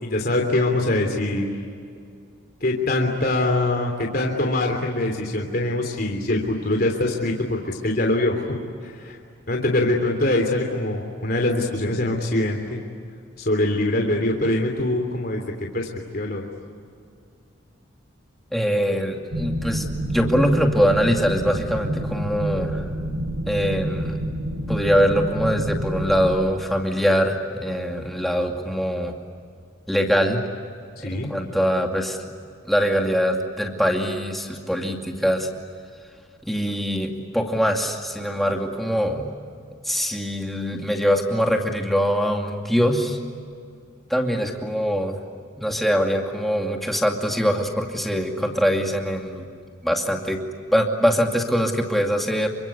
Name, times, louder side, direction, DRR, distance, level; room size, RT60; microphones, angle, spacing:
voice 1, 0.0-1.6 2.6-8.5 8.8-9.2 9.5-12.8 13.4-15.9 16.1-16.5 31.0-31.3, left 1 dB, 45° left, 1 dB, 3.2 m, -23 dB
voice 2, 18.5-22.9 23.5-24.2 24.7-29.1 29.9-30.4 31.0-32.2 32.6-35.5 36.4-39.3 39.8-43.2 44.1-45.2 45.6-49.5 49.8-50.4 50.7-52.5, equal, ahead, 1 dB, 2.5 m, -23 dB
sound 1, 19.3-26.4, right 1 dB, 65° right, 4.3 m, -28 dB
28.5 x 25.0 x 8.3 m, 2.3 s
head